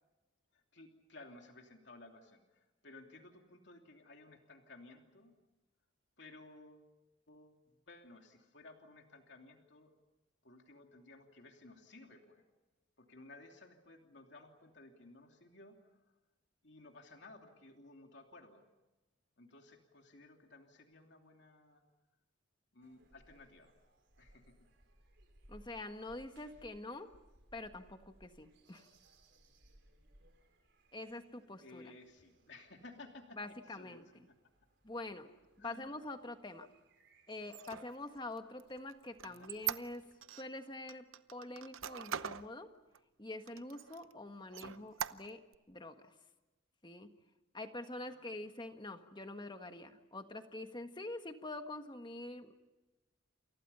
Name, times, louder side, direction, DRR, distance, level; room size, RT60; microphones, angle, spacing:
voice 1, 0.5-5.3 6.2-6.9 7.3-9.9 10.4-12.4 13.0-16.0 16.6-18.7 19.4-21.8 22.7-23.7 24.2-24.6 31.6-34.0 35.6-35.8 39.2-39.5 44.6-45.0 48.0-48.5, left 2 dB, 55° left, 3 dB, 3.0 m, -57 dB
sound 1, 22.8-40.3, right 1 dB, 55° right, 4.9 m, -67 dB
voice 2, 25.5-27.1 27.5-28.8 30.9-31.9 33.4-34.1 34.8-35.3 35.6-36.7 37.3-40.0 40.3-41.0 41.3-42.7 43.2-45.4 45.7-45.9 46.8-47.1 47.5-52.5, left 2 dB, 20° left, 7 dB, 1.5 m, -45 dB
Squeak, 37.4-40.4 40.9-42.5 42.9-43.0 43.5-44.1 44.5-45.6, right 9 dB, 75° right, 0.8 m, -42 dB
29.0 x 28.0 x 5.7 m, 1.1 s
head